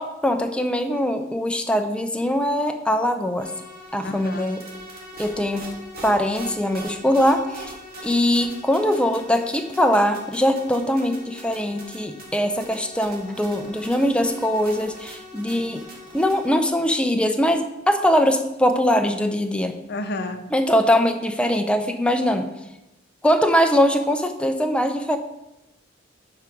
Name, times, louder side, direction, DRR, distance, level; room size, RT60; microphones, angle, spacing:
voice 1, 0.0-3.5 3.9-4.6 5.2-5.7 6.0-7.7 8.0-15.8 16.1-19.8 20.5-22.5 23.2-25.2, equal, 5° left, 6 dB, 0.6 m, -21 dB
sound 1, 3.4-16.5, right 1 dB, 55° right, 1.9 m, -41 dB
voice 2, 4.0-4.5 19.9-20.4, left 2 dB, 60° left, 8 dB, 0.8 m, -30 dB
7.2 x 4.8 x 5.1 m, 0.93 s
head